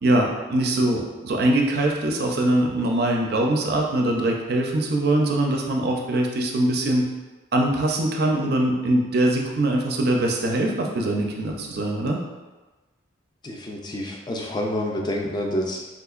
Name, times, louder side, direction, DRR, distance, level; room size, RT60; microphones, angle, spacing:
voice 1, 0.0-7.1 7.5-12.2, right 1 dB, 50° right, 0 dB, 0.4 m, -22 dB
voice 2, 13.4-15.8, left 1 dB, 20° left, 0 dB, 0.3 m, -28 dB
3.7 x 2.8 x 2.4 m, 1.2 s
head